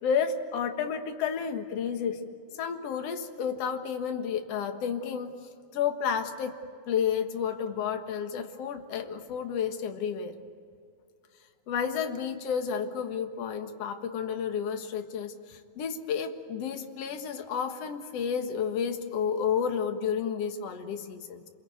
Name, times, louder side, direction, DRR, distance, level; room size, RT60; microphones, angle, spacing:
voice 1, 0.0-2.2 2.6-5.3 5.7-6.5 6.9-10.3 11.7-21.4, left 7 dB, 55° left, 6 dB, 2.3 m, -31 dB
29.0 x 22.0 x 9.4 m, 2.3 s
omnidirectional pair, 3.8 m